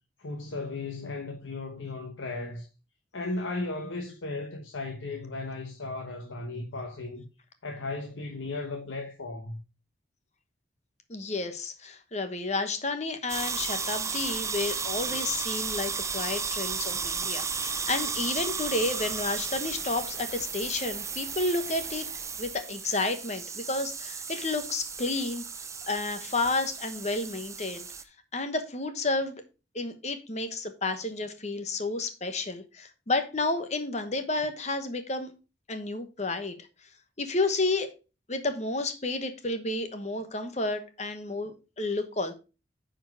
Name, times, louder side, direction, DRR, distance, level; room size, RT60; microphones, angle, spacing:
voice 1, 0.2-2.7 3.1-7.2 7.6-9.6, left 2 dB, 90° left, 1.1 m, -36 dB
voice 2, 11.1-22.1 22.4-25.4 25.9-27.9 28.3-29.4 29.7-35.3 35.7-36.5 37.2-37.9 38.3-42.3, left 2 dB, 35° left, 1.1 m, -31 dB
sound 1, 13.3-28.0, right 5 dB, 15° right, 0.5 m, -34 dB
9.4 x 4.5 x 4.7 m
head